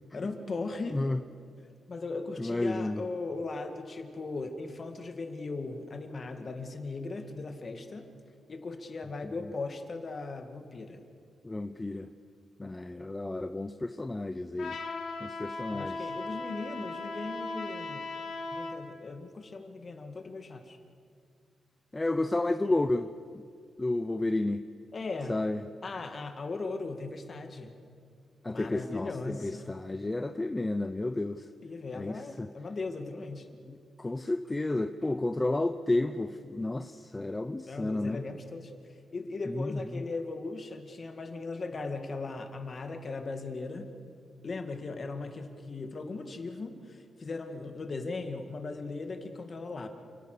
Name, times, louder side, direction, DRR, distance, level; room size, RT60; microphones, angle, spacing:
voice 1, 0.1-1.0 1.9-8.1 8.5-11.0 15.7-18.1 18.5-20.8 24.9-25.4 25.8-27.7 28.5-29.7 31.6-33.5 37.7-38.7 39.1-43.9 44.4-49.9, left 3 dB, 35° left, 6 dB, 2.1 m, -38 dB
voice 2, 2.4-3.0 11.4-12.1 12.6-14.8 15.2-16.0 21.9-23.1 23.8-24.6 25.3-25.6 28.4-31.5 31.9-32.5 33.7-38.2 39.5-40.0, left 2 dB, 15° left, 9 dB, 0.6 m, -31 dB
Trumpet, 14.6-18.8, left 3 dB, 70° left, 3.3 m, -37 dB
29.5 x 17.5 x 6.8 m, 2.3 s
wide cardioid pair, 160°, 0 cm